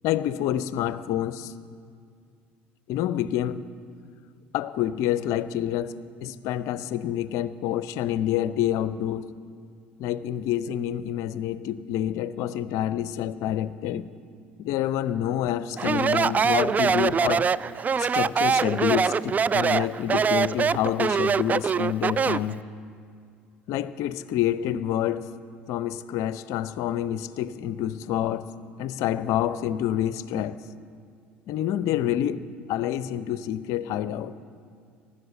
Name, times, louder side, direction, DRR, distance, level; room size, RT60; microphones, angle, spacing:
voice 1, 0.0-1.5 2.9-3.6 4.5-5.9 6.2-9.3 10.0-14.1 14.6-17.5 18.0-22.7 23.7-25.3 25.7-28.5 28.8-30.6 31.5-34.3, left 11 dB, 55° left, 15 dB, 0.6 m, -27 dB
Speech, 15.8-22.5, right 6 dB, 25° right, 0.3 m, -23 dB
15.5 x 11.5 x 7.5 m, 2.3 s
figure-of-eight pair, 65°, 6 cm